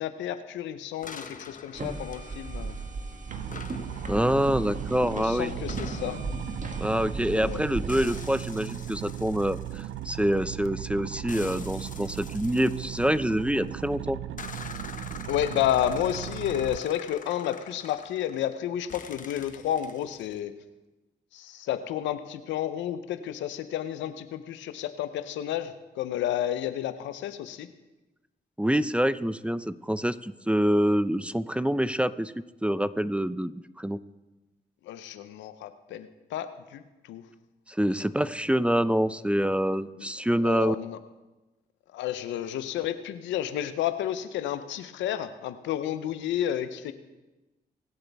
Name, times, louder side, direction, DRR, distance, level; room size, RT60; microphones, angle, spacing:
voice 1, 0.0-2.8 5.1-6.2 7.3-7.6 15.3-20.5 21.3-27.7 34.8-37.2 40.0-40.1 40.4-41.0 41.9-46.9, left 11 dB, 90° left, 11 dB, 0.7 m, -31 dB
sound 1, 1.0-3.1 3.5-7.5 7.9-10.6 11.3-13.7 14.4-18.6 18.9-20.4, left 5 dB, 45° left, 1.2 m, -45 dB
sound 2, 1.7-8.4, right 3 dB, 45° right, 1.6 m, -37 dB
sound 3, 3.3-16.8, right 12 dB, 85° right, 0.4 m, -37 dB
voice 2, 4.1-5.5 6.8-14.2 28.6-32.3 32.6-34.0 37.7-40.8, equal, 5° right, 15 dB, 0.5 m, -26 dB
22.0 x 7.9 x 3.5 m, 1.1 s
supercardioid pair, 50°, 19 cm